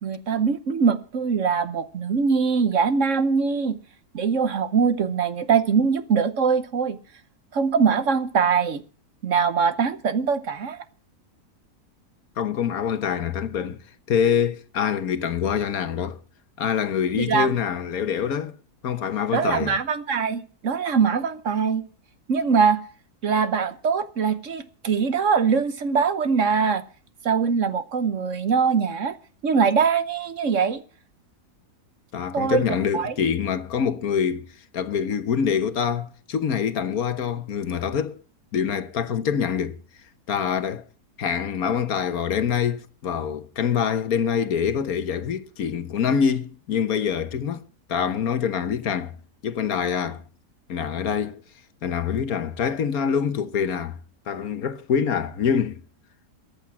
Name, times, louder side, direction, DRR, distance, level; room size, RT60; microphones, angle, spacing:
voice 1, 0.0-3.8 4.1-7.0 7.5-8.8 9.2-10.8 17.2-17.5 19.3-21.8 22.3-22.8 23.2-26.8 27.2-29.2 29.4-30.8 32.3-32.6 32.9-33.1, right 6 dB, 55° right, 1.2 m, -22 dB
voice 2, 12.4-13.8 14.1-16.2 16.6-18.5 18.8-19.7 32.1-34.5 34.7-38.2 38.5-39.8 40.3-40.8 41.2-47.6 47.9-49.2 49.4-50.2 50.7-51.4 51.8-54.0 54.3-55.8, left 7 dB, 60° left, 1.4 m, -25 dB
14.5 x 10.0 x 7.2 m
omnidirectional pair, 1.8 m